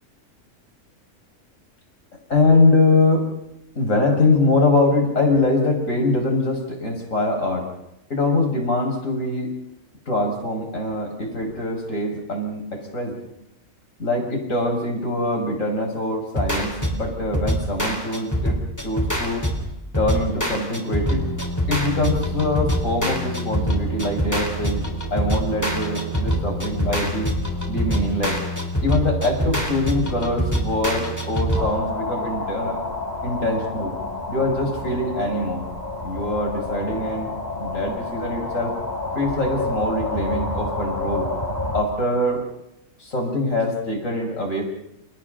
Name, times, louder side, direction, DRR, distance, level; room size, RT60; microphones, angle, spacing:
voice 1, 2.3-3.3 3.7-7.7 8.1-9.5 10.1-13.2 14.0-19.5 20.0-21.3 21.7-27.3 27.7-28.4 28.8-32.8 33.2-33.9 34.3-35.7 36.0-37.3 37.6-38.7 39.1-41.3 41.7-42.4 43.0-44.6, left 2 dB, 65° left, 1 dB, 6.0 m, -23 dB
sound 1, 16.3-31.7, equal, 10° left, 3.4 m, -25 dB
sound 2, 31.5-41.8, left 2 dB, 30° left, 3.7 m, -29 dB
29.5 x 29.5 x 3.9 m, 0.83 s
omnidirectional pair, 1.5 m